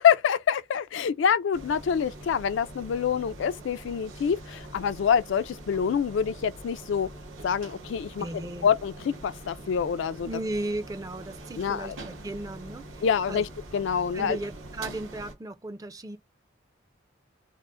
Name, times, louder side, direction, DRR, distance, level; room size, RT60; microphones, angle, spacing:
voice 1, 0.0-7.1 7.4-10.3 11.6-12.0 13.0-13.5 13.7-14.4, left 7 dB, 65° left, 0.3 m, -26 dB
sound 1, 1.5-15.3, right 2 dB, 75° right, 1.1 m, -44 dB
voice 2, 8.2-8.7 10.2-13.4 14.1-16.2, right 2 dB, 15° right, 0.4 m, -35 dB
3.6 x 2.0 x 3.7 m
head